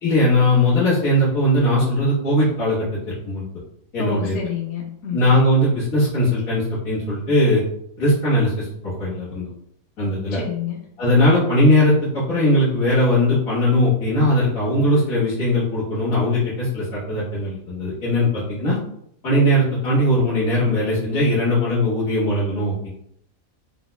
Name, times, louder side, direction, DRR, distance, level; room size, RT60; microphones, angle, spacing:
voice 1, 0.0-3.5 3.9-4.4 5.1-7.6 8.0-9.5 10.0-10.4 11.0-18.8 19.2-23.0, left 1 dB, 90° left, -11 dB, 1.9 m, -19 dB
voice 2, 4.0-5.3 10.3-10.9, left 9 dB, 65° left, 1 dB, 0.7 m, -29 dB
4.7 x 2.2 x 2.2 m, 0.70 s
omnidirectional pair, 1.4 m